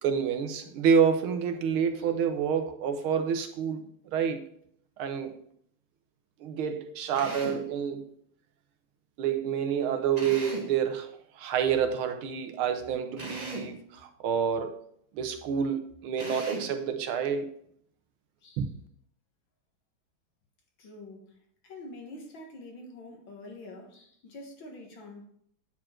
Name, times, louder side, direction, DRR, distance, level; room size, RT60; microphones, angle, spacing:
voice 1, 0.0-3.8 4.1-4.4 5.0-5.4 6.4-8.1 9.2-14.8 15.1-17.5 18.6-18.7, right 7 dB, 85° right, 1.8 m, -28 dB
Drill, 7.1-7.7 10.2-10.8 13.2-13.8 16.2-16.8, right 1 dB, 25° right, 1.2 m, -38 dB
voice 2, 20.8-21.4 21.6-25.3, left 2 dB, 70° left, 2.2 m, -46 dB
9.1 x 4.4 x 4.4 m
omnidirectional pair, 2.2 m